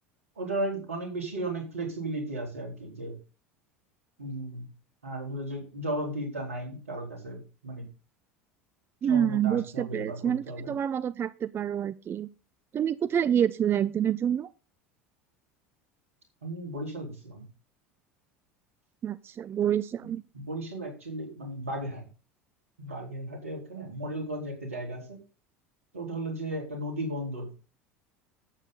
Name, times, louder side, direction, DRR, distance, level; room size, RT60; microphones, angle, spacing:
voice 1, 0.4-3.1 4.2-4.7 5.0-7.8 9.0-10.7 16.4-17.4 20.0-22.0 22.8-25.2 25.9-27.6, right 1 dB, 85° right, 2 dB, 4.3 m, -35 dB
voice 2, 9.0-12.3 12.7-14.5 19.0-20.2, right 9 dB, 30° right, 17 dB, 0.5 m, -27 dB
11.5 x 8.7 x 3.9 m, 0.32 s
figure-of-eight pair, 75°, 7 cm